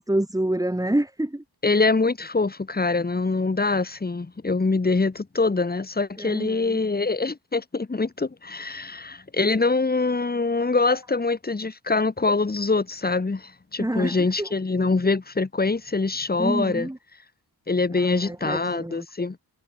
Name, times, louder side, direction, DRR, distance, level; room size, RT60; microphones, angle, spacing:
voice 1, 0.0-1.4 6.2-6.8 13.8-14.5 16.4-17.0 17.9-19.1, right 1 dB, 10° right, 3.8 m, -27 dB
voice 2, 1.6-16.9 17.7-19.4, left 3 dB, 25° left, 1.6 m, -24 dB
wide cardioid pair, 135°, 41 cm